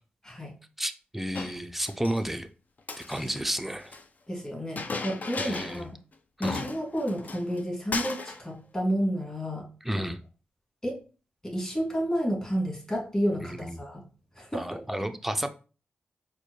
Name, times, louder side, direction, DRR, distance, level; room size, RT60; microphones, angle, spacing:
voice 1, 0.8-2.5 3.0-3.9 5.4-5.8 6.4-6.6 9.8-10.2 13.5-13.7 14.5-15.6, right 1 dB, 5° right, 8 dB, 0.4 m, -32 dB
Chink clink, 1.3-2.2 2.8-4.0 4.8-5.9 6.1-6.2 6.4-7.6 7.9-8.4, left 3 dB, 45° left, 0.5 m, -36 dB
voice 2, 4.3-5.9 6.4-9.7 9.9-10.0 10.8-11.0 11.4-14.0 14.3-14.8, equal, 20° left, -2 dB, 1.8 m, -31 dB
4.3 x 2.2 x 2.9 m, 0.35 s
cardioid pair, 50°, 4 cm